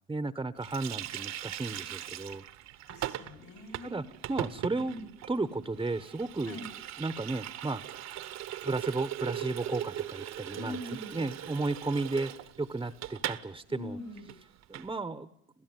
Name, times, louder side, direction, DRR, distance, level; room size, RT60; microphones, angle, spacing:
voice 1, 0.1-2.4 3.8-4.9 5.3-6.6 7.0-8.0 8.6-14.0 14.7-15.3, right 3 dB, 10° right, 12 dB, 1.0 m, -34 dB
Water tap faucet, 0.6-13.5 13.7-13.9 14.2-14.9, right 12 dB, 55° right, 1.2 m, -40 dB
voice 2, 2.9-4.1 4.8-5.1 6.4-6.7 10.5-11.2 13.7-14.4, left 2 dB, 60° left, 6 dB, 5.3 m, -43 dB
28.0 x 16.0 x 9.3 m, 0.76 s
hypercardioid pair, 75°, 32 cm